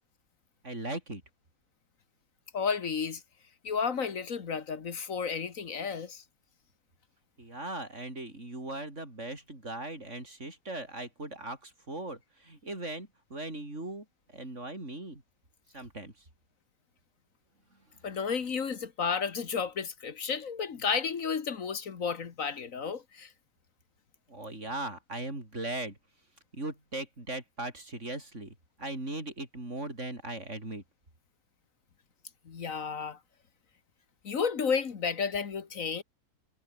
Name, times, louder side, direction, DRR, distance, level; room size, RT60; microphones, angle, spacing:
voice 1, 0.6-1.2 7.4-14.0 14.3-15.2 15.7-16.1 24.3-26.0 26.5-30.8, right 2 dB, 50° right, 6.7 m, -39 dB
voice 2, 2.5-3.2 3.6-6.2 18.0-23.3 32.5-33.2 34.2-36.0, left 6 dB, 60° left, 1.8 m, -32 dB
omnidirectional pair, 1.6 m